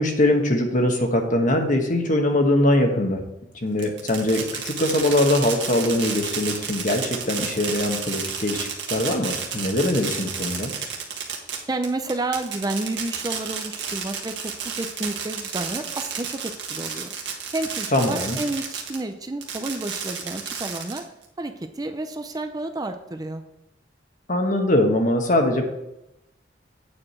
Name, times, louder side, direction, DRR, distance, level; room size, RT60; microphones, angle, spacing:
voice 1, 0.0-3.2 3.6-10.7 17.9-18.4 24.3-25.6, left 1 dB, 45° left, 4 dB, 1.3 m, -22 dB
Fireworks, 3.8-19.0 19.4-21.3, right 6 dB, 70° right, 1.6 m, -31 dB
voice 2, 11.7-17.2 17.5-21.1 21.4-23.4, right 2 dB, 20° right, 7 dB, 0.5 m, -30 dB
8.5 x 4.9 x 6.1 m, 0.89 s
head